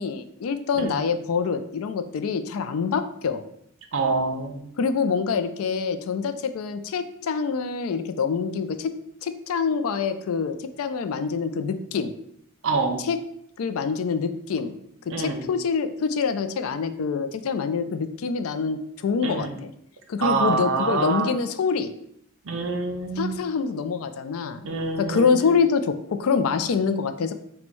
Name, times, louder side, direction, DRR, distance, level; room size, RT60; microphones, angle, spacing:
voice 1, 0.0-3.4 4.8-8.9 9.2-12.1 13.0-13.2 13.6-14.7 15.2-19.7 20.1-21.9 23.2-24.6 25.0-27.3, left 5 dB, 70° left, 10 dB, 0.4 m, -25 dB
voice 2, 3.9-4.7 12.6-13.0 15.1-15.4 19.2-19.5 20.2-21.3 22.5-23.5 24.6-25.5, right 4 dB, 60° right, 5 dB, 0.6 m, -26 dB
4.2 x 2.2 x 4.4 m, 0.72 s
head